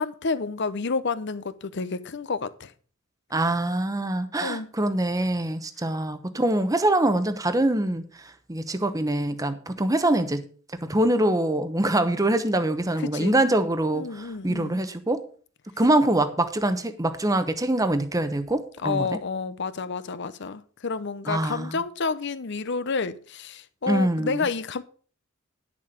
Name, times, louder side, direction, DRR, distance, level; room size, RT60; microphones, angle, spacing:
voice 1, 0.0-2.7 4.4-4.7 13.0-13.4 13.9-14.8 18.8-24.8, left 4 dB, 60° left, 0.7 m, -30 dB
voice 2, 3.3-8.0 8.5-10.4 10.8-15.2 15.8-19.1 21.3-21.8 23.9-24.4, right 1 dB, 15° right, 0.9 m, -24 dB
10.5 x 6.9 x 5.1 m
head